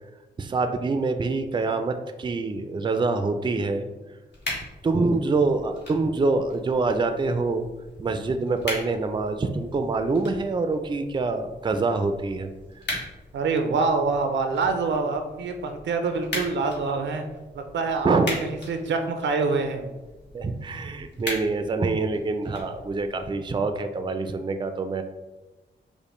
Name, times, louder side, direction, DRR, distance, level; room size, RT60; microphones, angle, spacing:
voice 1, 0.4-3.9 4.8-7.7 8.0-12.5 18.0-18.3 20.3-25.0, right 3 dB, 25° right, 8 dB, 0.4 m, -25 dB
sound 1, 4.3-23.3, left 1 dB, 70° left, 1.3 m, -40 dB
voice 2, 13.3-17.2 17.5-19.9, right 4 dB, 85° right, 6 dB, 0.5 m, -26 dB
5.1 x 2.1 x 3.0 m, 1.1 s
cardioid pair, 65°, 18 cm